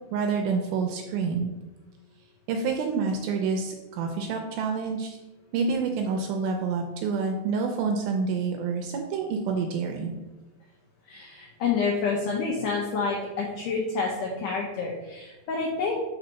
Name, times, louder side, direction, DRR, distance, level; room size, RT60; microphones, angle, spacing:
voice 1, 0.1-1.5 2.5-5.2 5.5-10.2, right 5 dB, 80° right, 3 dB, 2.2 m, -28 dB
voice 2, 11.1-16.0, left 4 dB, 90° left, -1 dB, 1.8 m, -28 dB
5.5 x 4.0 x 5.5 m, 1.1 s
omnidirectional pair, 4.8 m